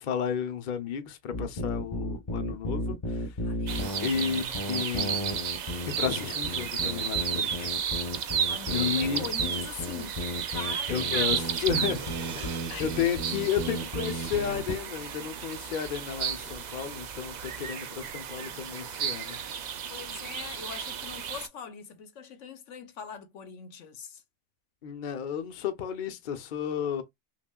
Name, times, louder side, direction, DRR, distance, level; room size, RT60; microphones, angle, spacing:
voice 1, 0.0-3.3 4.0-5.3 6.0-7.9 8.7-9.2 10.9-12.0 12.3-19.4 24.8-27.0, left 8 dB, 50° left, 0.7 m, -32 dB
sound 1, 1.3-14.8, left 1 dB, 30° left, 1.0 m, -34 dB
voice 2, 3.4-4.1 8.5-10.3 10.5-11.3 11.6-11.9 12.7-13.0 17.8-18.7 19.9-24.2, left 7 dB, 85° left, 1.1 m, -42 dB
sound 2, 3.7-21.5, right 8 dB, 55° right, 0.4 m, -33 dB
sound 3, 11.9-15.4, right 7 dB, 75° right, 1.0 m, -46 dB
5.7 x 2.4 x 2.2 m
omnidirectional pair, 1.2 m